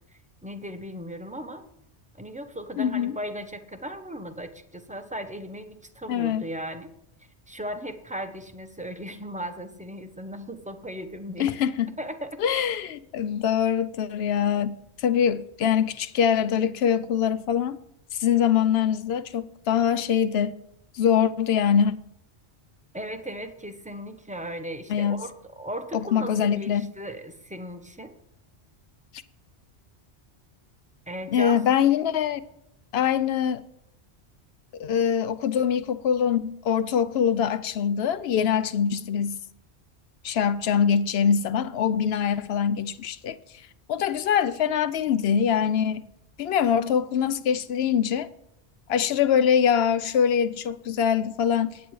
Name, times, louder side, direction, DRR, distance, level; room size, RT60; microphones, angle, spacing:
voice 1, 0.4-1.6 2.2-6.9 7.5-11.5 12.0-12.7 22.9-28.2 31.1-31.6, equal, 10° right, 0.6 m, -37 dB
voice 2, 2.8-3.1 6.1-6.5 11.4-12.0 12.4-17.8 18.2-20.6 20.9-21.9 24.9-25.2 25.9-26.9 31.3-32.4 32.9-33.6 34.7-39.4 40.2-43.4 43.9-46.0 46.4-48.3 48.9-51.8, left 8 dB, 70° left, 0.8 m, -23 dB
18.0 x 8.2 x 3.1 m
omnidirectional pair, 1.1 m